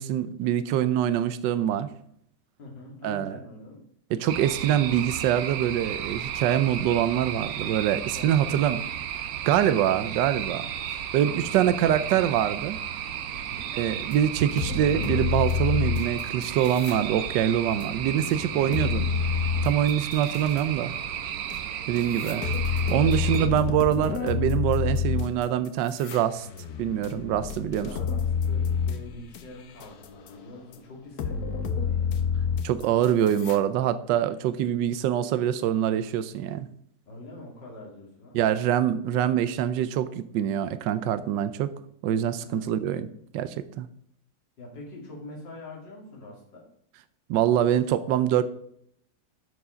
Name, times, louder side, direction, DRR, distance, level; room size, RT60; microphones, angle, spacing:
voice 1, 0.0-1.9 3.0-3.4 4.1-8.8 9.5-10.6 11.1-12.8 13.7-19.1 19.6-20.9 21.9-22.4 22.9-26.5 26.8-27.9 32.6-36.7 38.3-41.7 42.0-43.1 43.3-43.9 47.3-48.4, right 10 dB, 80° right, 12 dB, 1.3 m, -24 dB
voice 2, 2.6-3.9 8.1-8.5 11.3-12.2 13.3-13.8 18.5-18.8 23.2-23.6 27.8-32.1 37.1-38.4 42.4-42.7 44.6-46.6, left 2 dB, 80° left, -2 dB, 3.1 m, -44 dB
sound 1, 4.3-23.5, right 9 dB, 65° right, 1.0 m, -34 dB
sound 2, 14.1-14.2 14.6-17.0 17.3-20.6 21.5-21.6 22.0-29.4 29.8-30.3 30.7-30.8 31.2-33.6, left 6 dB, 60° left, 1.2 m, -28 dB
12.5 x 4.7 x 5.0 m, 0.68 s
omnidirectional pair, 1.9 m